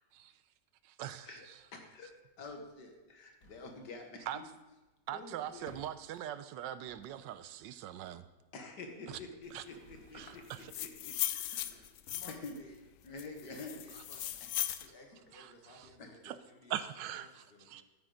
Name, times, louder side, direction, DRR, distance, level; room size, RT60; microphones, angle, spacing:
voice 1, 1.0-1.3 4.3-4.4 5.1-8.2 9.1-9.2 9.5-9.6 10.1-10.7 11.1-11.3 15.3-15.5 15.7-15.9 16.2-16.3 16.7-17.8, right 11 dB, 85° right, 13 dB, 1.3 m, -41 dB
Drawer open or close, 1.4-16.5, left 1 dB, 50° left, 1.8 m, -62 dB
voice 2, 1.7-2.1 2.4-4.5 5.1-5.7 8.5-11.9 12.2-12.5 13.0-13.7 14.4-14.5 16.0-16.1, left 3 dB, 70° left, 3 dB, 2.1 m, -48 dB
sound 1, 10.5-12.6 13.2-14.9, left 12 dB, 85° left, 0.7 m, -38 dB
voice 3, 12.1-12.8 13.4-14.4 14.8-16.9 17.2-17.8, left 2 dB, 35° left, 3 dB, 1.3 m, -57 dB
12.5 x 9.3 x 3.9 m, 1.1 s
omnidirectional pair, 1.9 m